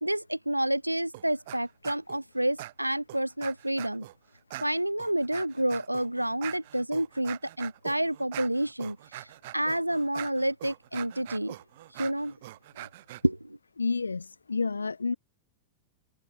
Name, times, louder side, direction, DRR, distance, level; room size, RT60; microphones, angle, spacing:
voice 1, 0.0-4.0 4.6-9.3 9.5-11.5 12.0-12.3 13.2-13.4, right 1 dB, 85° right, 0.7 m, -29 dB
sound 1, 1.1-1.6 1.8-2.2 2.6-4.1 4.5-13.2, right 16 dB, 55° right, 7.8 m, -43 dB
voice 2, 13.8-15.2, left 4 dB, 75° left, 0.7 m, -30 dB
open air
figure-of-eight pair, 90°, 0 cm